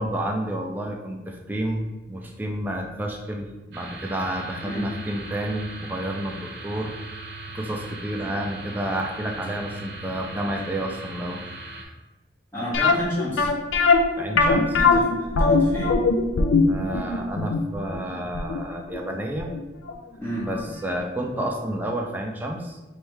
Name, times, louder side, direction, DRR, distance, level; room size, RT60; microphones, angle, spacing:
voice 1, 0.0-11.5 14.2-14.8 16.7-19.5 20.5-22.8, right 1 dB, 10° right, 1 dB, 0.3 m, -30 dB
sound 1, 3.7-11.8, right 2 dB, 55° right, 0.7 m, -39 dB
voice 2, 12.5-13.5 14.7-15.9 20.2-20.5, equal, 10° left, -10 dB, 1.0 m, -31 dB
sound 2, 12.7-19.6 19.9-20.0 20.5-20.7 21.0-21.1, left 4 dB, 75° left, 0.4 m, -21 dB
3.5 x 2.7 x 4.4 m, 1.1 s
head